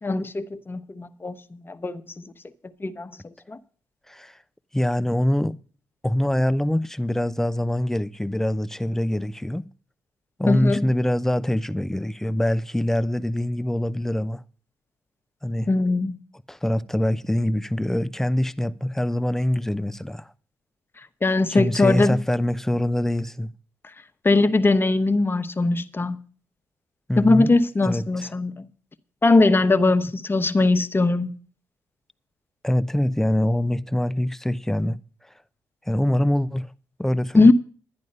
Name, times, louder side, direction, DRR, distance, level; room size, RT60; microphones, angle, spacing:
voice 1, 0.0-2.3 2.8-3.6 10.5-10.9 15.7-16.2 21.0-22.2 24.2-26.2 27.2-28.7 29.2-31.3 37.3-37.5, left 3 dB, 30° left, 1.1 m, -20 dB
voice 2, 4.1-4.4 4.7-5.6 6.0-9.6 10.4-14.4 15.4-15.7 16.5-20.3 21.5-23.5 27.1-27.5 27.8-28.3 32.6-35.0 35.9-36.7 37.0-37.5, left 1 dB, 5° left, 0.7 m, -24 dB
10.5 x 10.5 x 5.5 m
hypercardioid pair, 45°, 8 cm